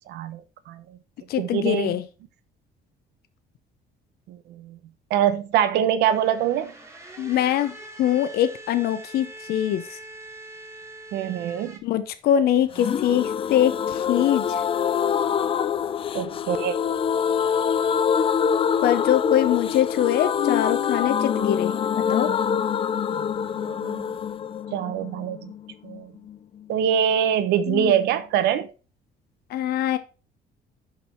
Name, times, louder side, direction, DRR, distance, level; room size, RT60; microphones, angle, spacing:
voice 1, 0.1-0.8 1.4-2.0 4.3-4.8 5.1-6.7 11.1-11.8 16.1-16.8 23.6-24.1 24.7-25.5 25.8-26.1 26.7-28.7, right 9 dB, 80° right, 0.8 m, -24 dB
voice 2, 1.3-2.0 7.2-10.0 11.8-14.4 18.8-22.3 27.7-27.9 29.5-30.0, left 11 dB, 65° left, 0.7 m, -23 dB
sound 1, 6.1-11.8, right 2 dB, 15° right, 1.4 m, -43 dB
sound 2, 12.7-26.4 26.6-26.7 27.0-27.1, left 7 dB, 35° left, 0.4 m, -25 dB
5.7 x 5.4 x 4.3 m
cardioid pair, 110°, 17 cm